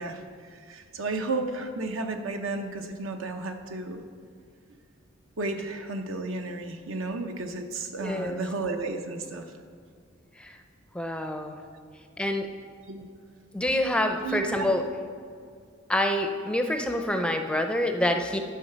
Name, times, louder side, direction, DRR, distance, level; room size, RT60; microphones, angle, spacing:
voice 1, 0.0-4.0 5.4-9.4 12.8-13.0 14.2-14.7, right 3 dB, 70° right, 5 dB, 0.9 m, -33 dB
voice 2, 8.0-8.4 10.4-10.5 10.9-11.6 12.2-12.5 13.5-14.8 15.9-18.4, left 1 dB, 5° left, 5 dB, 0.5 m, -26 dB
10.0 x 4.8 x 6.7 m, 2.2 s
head